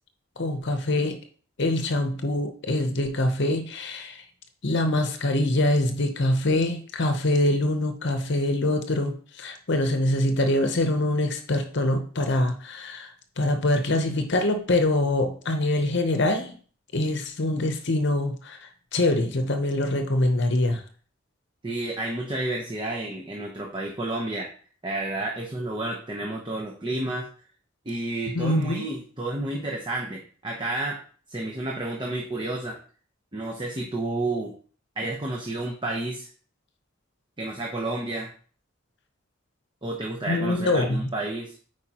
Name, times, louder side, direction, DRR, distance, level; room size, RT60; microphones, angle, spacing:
voice 1, 0.4-1.2 1.6-4.2 4.6-16.6 16.9-20.8 28.3-28.8 40.3-41.0, left 1 dB, 60° left, 6 dB, 0.8 m, -24 dB
voice 2, 21.6-24.5 24.8-27.3 27.9-31.0 31.3-32.8 33.3-34.5 35.0-36.3 37.4-38.3 39.8-41.6, right 2 dB, 25° right, 0 dB, 0.9 m, -30 dB
8.9 x 4.8 x 2.9 m, 0.43 s
head